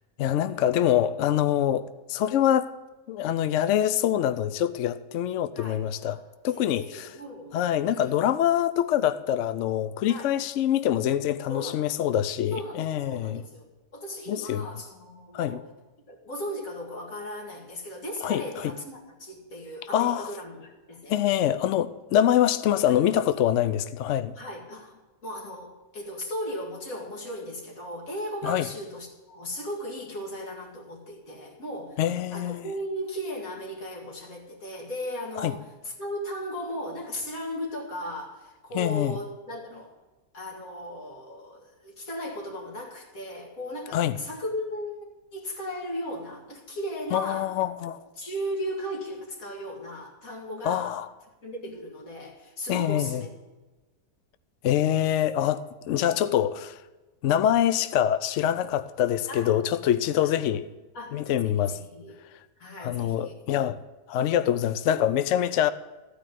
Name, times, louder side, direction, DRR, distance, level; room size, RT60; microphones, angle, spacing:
voice 1, 0.2-2.7 3.1-6.2 6.4-7.1 7.5-13.4 14.3-14.7 15.3-15.6 18.2-18.7 19.9-20.3 21.1-24.3 28.4-28.7 32.0-32.7 35.4-35.5 38.7-39.2 43.9-44.2 47.1-48.0 50.6-51.1 52.7-53.2 54.6-56.8 57.2-60.6 61.1-61.8 62.8-63.8 64.1-65.7, left 11 dB, 75° left, 0.6 m, -25 dB
voice 2, 6.5-8.2 10.1-10.3 11.5-12.1 12.5-15.7 16.1-21.2 22.9-23.0 24.4-32.0 32.3-39.9 40.3-47.5 48.2-51.0 51.4-53.3 56.2-56.3 59.3-59.5 60.2-60.5 60.9-61.3 61.6-62.2 62.6-63.4 65.4-65.5, equal, 55° left, 2.5 m, -37 dB
14.5 x 5.0 x 9.1 m
omnidirectional pair, 1.7 m